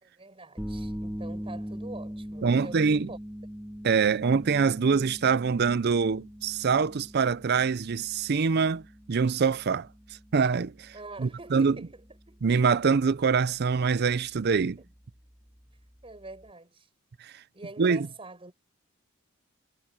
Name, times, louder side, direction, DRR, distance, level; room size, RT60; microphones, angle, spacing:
voice 1, 0.0-3.2 10.9-12.4 14.8-14.9 16.0-16.9 17.5-18.5, right 2 dB, 25° right, 5.0 m, -45 dB
sound 1, 0.6-16.5, equal, 5° right, 1.8 m, -42 dB
voice 2, 2.4-3.1 3.8-9.9 10.3-10.9 11.2-11.8 12.4-14.8 17.8-18.1, right 5 dB, 50° right, 0.5 m, -24 dB
head